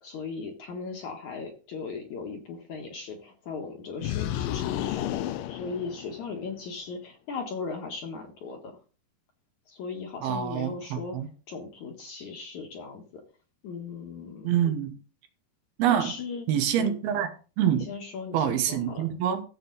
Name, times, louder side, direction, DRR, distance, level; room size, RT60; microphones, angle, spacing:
voice 1, 0.0-5.1 5.5-8.8 9.7-13.0 13.6-14.5 15.9-16.5 16.8-16.9 17.9-19.1, left 4 dB, 60° left, 2.4 m, -38 dB
sound 1, 4.0-6.5, left 12 dB, 90° left, 1.9 m, -31 dB
voice 2, 10.2-10.8 11.1-11.3 14.4-15.0 15.8-16.1 16.5-17.3 17.6-17.9 18.3-19.4, right 9 dB, 75° right, 3.1 m, -25 dB
14.0 x 7.5 x 4.0 m
omnidirectional pair, 4.7 m